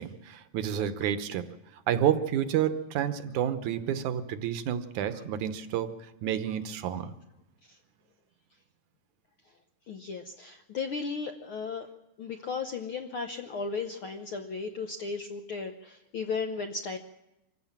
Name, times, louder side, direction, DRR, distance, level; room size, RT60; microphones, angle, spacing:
voice 1, 0.0-1.5 1.9-5.9 6.2-7.1, right 10 dB, 75° right, 11 dB, 2.4 m, -29 dB
voice 2, 9.9-11.9 12.2-17.0, left 4 dB, 70° left, 5 dB, 1.3 m, -35 dB
25.5 x 15.0 x 7.3 m, 0.91 s
omnidirectional pair, 3.5 m